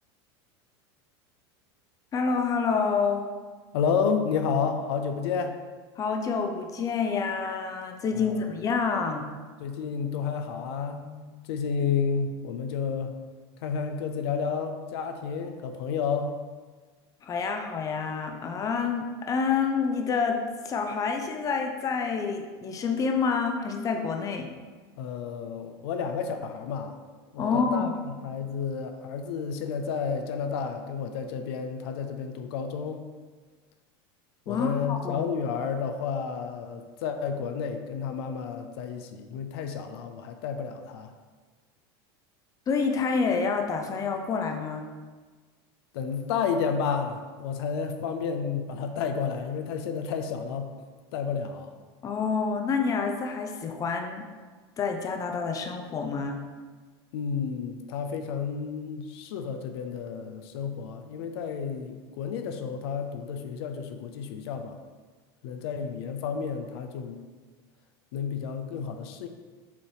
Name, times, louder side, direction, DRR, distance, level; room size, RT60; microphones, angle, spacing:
voice 1, 2.1-3.2 6.0-9.3 17.2-24.5 27.4-27.9 34.5-35.3 42.7-44.9 52.0-54.2 54.8-56.4, left 5 dB, 25° left, 4 dB, 0.6 m, -28 dB
voice 2, 3.7-5.6 8.1-8.5 9.6-13.1 13.6-16.3 25.0-26.9 27.3-33.0 34.5-41.1 45.9-50.7 51.1-51.7 57.1-64.8 65.4-67.2 68.1-69.3, left 6 dB, 70° left, 6 dB, 0.6 m, -31 dB
7.1 x 3.0 x 4.9 m, 1.4 s
supercardioid pair, 125°, 14 cm